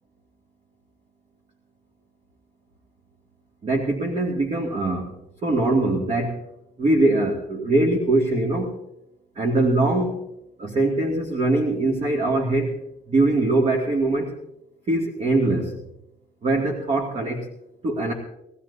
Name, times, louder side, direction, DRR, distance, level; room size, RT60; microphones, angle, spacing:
voice 1, 3.6-5.1 5.4-6.4 6.8-8.7 9.4-10.2 10.6-12.8 13.1-14.4 14.9-15.8 16.4-17.5 17.8-18.1, right 2 dB, 40° right, -1 dB, 2.3 m, -22 dB
23.0 x 15.5 x 2.8 m, 0.84 s
cardioid pair, 110°, 17 cm